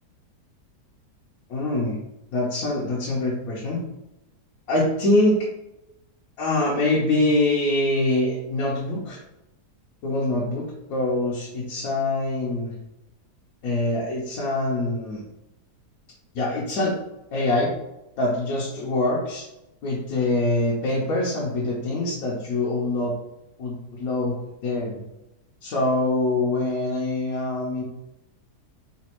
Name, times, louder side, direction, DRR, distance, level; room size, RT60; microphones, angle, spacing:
voice 1, 1.5-2.0 2.3-3.8 4.7-5.5 6.4-9.2 10.0-12.7 13.6-15.2 16.3-17.0 17.3-17.7 18.2-19.4 19.8-23.1 23.6-24.4 24.6-25.0 25.6-27.8, left 2 dB, 65° left, -5 dB, 1.1 m, -24 dB
4.1 x 2.2 x 2.9 m, 0.93 s
omnidirectional pair, 1.8 m